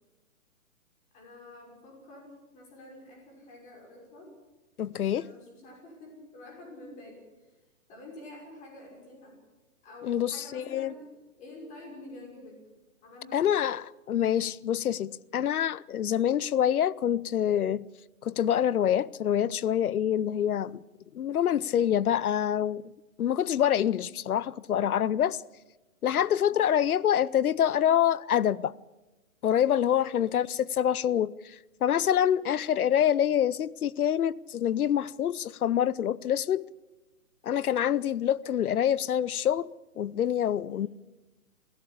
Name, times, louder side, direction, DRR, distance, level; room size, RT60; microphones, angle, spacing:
voice 1, 1.1-4.3 5.1-7.3 7.9-9.4 9.8-11.1 11.4-12.6 13.0-13.6 21.5-22.0 23.9-24.1 26.3-26.6 30.0-30.2 32.3-32.5 38.4-38.5 40.7-40.9, left 2 dB, 15° left, 5.9 m, -48 dB
voice 2, 4.8-5.3 10.1-10.9 13.3-17.9 18.2-20.8 21.1-22.8 23.2-25.4 26.0-28.7 29.4-36.7 37.4-40.9, left 10 dB, 85° left, 0.7 m, -26 dB
21.0 x 16.5 x 8.5 m
hypercardioid pair, 160°, 43 cm